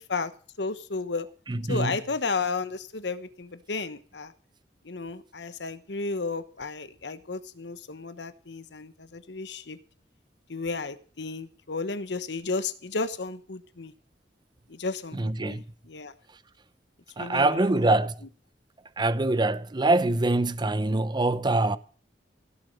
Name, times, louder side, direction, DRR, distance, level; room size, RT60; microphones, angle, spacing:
voice 1, 0.6-1.3 1.7-4.3 4.8-9.8 10.5-13.9 14.7-15.6 15.9-16.1 17.2-17.7, left 4 dB, 75° left, 1.1 m, -33 dB
voice 2, 1.5-2.0 15.1-15.6 17.2-18.2 19.0-21.8, right 2 dB, 25° right, 0.6 m, -24 dB
16.5 x 7.3 x 6.6 m
head